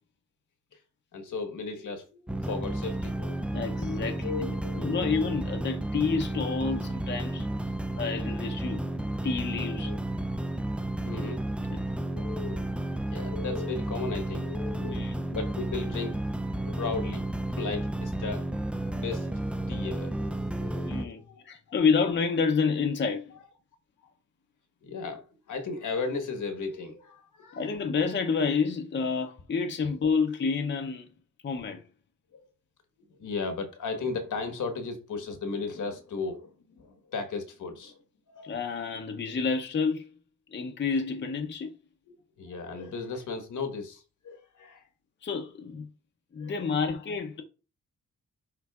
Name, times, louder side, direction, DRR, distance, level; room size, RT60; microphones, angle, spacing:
voice 1, 1.1-3.4 4.2-5.3 7.8-8.1 9.7-10.0 11.0-11.4 12.0-12.8 13.1-16.2 16.5-17.3 17.5-18.5 18.9-20.1 20.5-21.8 24.8-27.8 32.3-32.4 33.1-38.0 38.3-38.5 42.4-44.9 46.4-46.7, left 4 dB, 75° left, 1.4 m, -36 dB
sound 1, 2.3-21.1, right 1 dB, 5° right, 0.4 m, -32 dB
voice 2, 3.5-7.5 8.0-8.9 9.2-9.9 14.7-15.1 20.8-23.4 27.5-31.1 31.4-31.8 38.4-40.1 40.5-41.7 45.2-45.9 46.3-47.4, left 5 dB, 35° left, 0.6 m, -29 dB
10.5 x 3.8 x 2.4 m
wide cardioid pair, 135°, 31 cm